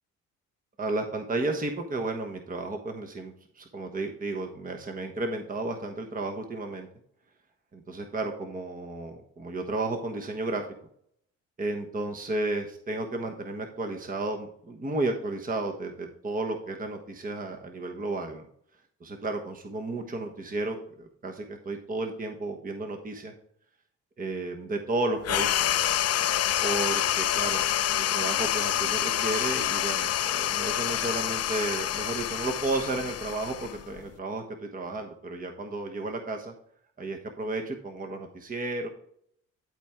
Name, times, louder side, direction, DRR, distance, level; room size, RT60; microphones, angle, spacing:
voice 1, 0.8-6.9 7.7-10.6 11.6-18.5 19.0-23.3 24.2-25.7 26.6-27.6 27.9-36.5 37.0-38.9, right 2 dB, 30° right, 3 dB, 1.2 m, -33 dB
sound 1, 25.2-34.1, left 11 dB, 55° left, 0.5 m, -27 dB
12.0 x 4.5 x 3.6 m, 0.66 s
cardioid pair, 90°, 30 cm